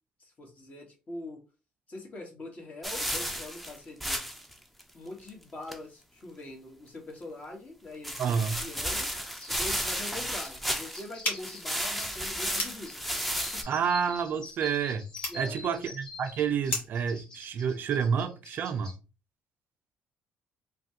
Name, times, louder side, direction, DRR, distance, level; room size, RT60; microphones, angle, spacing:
voice 1, 0.2-1.4 1.9-4.2 4.9-9.1 9.5-13.6 15.3-15.9, left 2 dB, 45° left, 1.3 m, -43 dB
sound 1, 2.8-4.5 4.8-4.9 5.3-5.4 5.7-5.8 8.0-11.1 11.4-13.6, equal, ahead, 0.5 m, -33 dB
voice 2, 8.2-8.6 13.7-15.1 15.3-18.9, right 7 dB, 60° right, 0.4 m, -29 dB
sound 2, 9.3-19.0, left 2 dB, 20° left, 1.0 m, -47 dB
sound 3, 11.2-17.1, left 2 dB, 60° left, 1.4 m, -38 dB
3.1 x 2.2 x 2.7 m
supercardioid pair, 70°, 4 cm